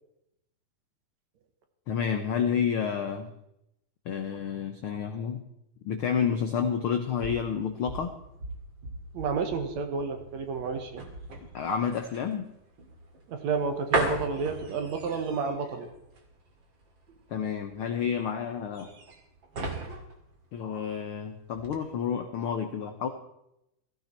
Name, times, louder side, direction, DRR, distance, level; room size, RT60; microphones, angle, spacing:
voice 1, 1.9-3.3 4.0-5.4 5.8-8.1 11.5-12.5 17.3-18.9 20.5-23.1, left 7 dB, 75° left, 7 dB, 1.2 m, -30 dB
sound 1, 6.8-21.2 21.5-21.8, right 2 dB, 40° right, 2.6 m, -37 dB
voice 2, 9.1-11.0 13.3-15.9, right 5 dB, 65° right, 6 dB, 2.4 m, -30 dB
16.0 x 14.5 x 4.4 m, 0.83 s
omnidirectional pair, 3.7 m